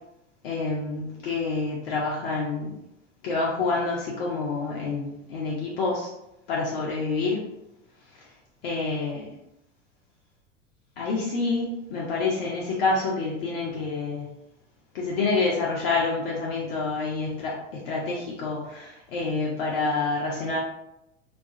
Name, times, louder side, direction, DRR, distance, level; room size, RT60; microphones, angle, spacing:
voice 1, 0.4-2.8 3.2-6.1 6.5-7.4 8.6-9.2 11.0-14.3 14.9-20.6, left 3 dB, 50° left, -4 dB, 0.6 m, -27 dB
2.3 x 2.2 x 2.6 m, 0.85 s
figure-of-eight pair, 80°, 37 cm